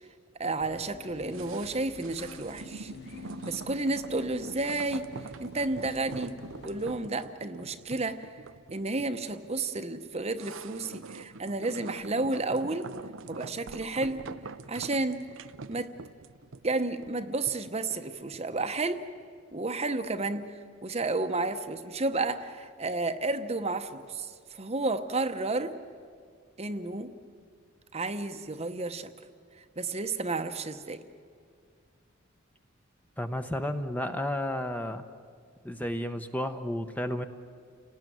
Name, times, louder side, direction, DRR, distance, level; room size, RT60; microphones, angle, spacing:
voice 1, 0.4-2.9 3.4-5.1 5.4-6.4 6.6-8.3 8.7-12.9 13.3-14.3 14.7-15.2 15.7-15.9 16.6-19.0 19.5-20.5 20.8-25.8 26.6-27.1 27.9-29.1 29.8-31.0, right 2 dB, 30° right, 9 dB, 0.9 m, -31 dB
sound 1, 0.6-7.1, left 5 dB, 50° left, 0.8 m, -49 dB
sound 2, 1.3-18.6 18.9-19.0, right 4 dB, 65° right, 0.6 m, -44 dB
voice 2, 33.2-35.0 35.6-37.3, left 1 dB, 10° left, 7 dB, 0.8 m, -32 dB
30.0 x 18.5 x 9.3 m, 2.2 s
head